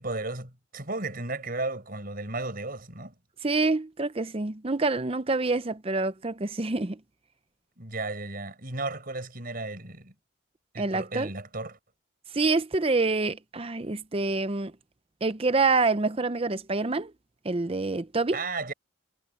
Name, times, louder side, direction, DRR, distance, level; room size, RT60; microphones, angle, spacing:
voice 1, 0.0-3.1 7.8-10.1 10.7-11.8 18.3-18.7, right 2 dB, 45° right, 5.7 m, -34 dB
voice 2, 3.4-7.0 10.8-11.3 12.3-14.7 15.2-17.1 17.4-18.4, right 3 dB, 30° right, 0.7 m, -26 dB
head